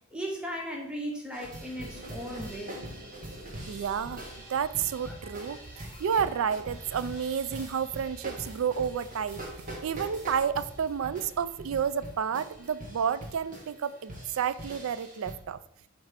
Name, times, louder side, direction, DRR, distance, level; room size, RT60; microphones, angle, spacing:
voice 1, 0.1-2.8, equal, 5° right, -1 dB, 0.8 m, -36 dB
sound 1, 1.3-15.4, right 1 dB, 40° right, 1.4 m, -44 dB
sound 2, 1.7-5.6, equal, 90° right, 1.8 m, -50 dB
voice 2, 3.7-4.2 4.5-5.6 6.0-9.4 9.8-15.6, right 7 dB, 65° right, 15 dB, 0.3 m, -30 dB
sound 3, 4.2-12.7, equal, 15° left, 2.1 m, -51 dB
8.0 x 3.2 x 5.0 m, 0.75 s
head